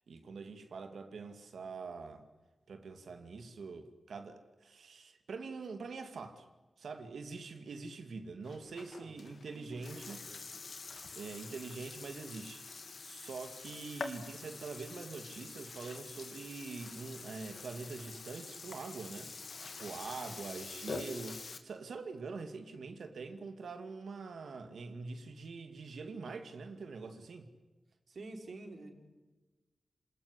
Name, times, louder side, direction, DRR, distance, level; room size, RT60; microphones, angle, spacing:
voice 1, 0.1-2.2 2.7-6.5 6.8-10.2 11.1-12.6 13.0-19.3 19.6-27.5, right 4 dB, 85° right, 2.4 m, -44 dB
Burping eructation, 8.4-21.6, left 4 dB, 60° left, 2.6 m, -46 dB
voice 2, 9.6-10.5 20.2-20.4 28.1-28.9, right 2 dB, 65° right, 4.7 m, -49 dB
27.5 x 20.0 x 9.9 m
cardioid pair, 65°, 0 cm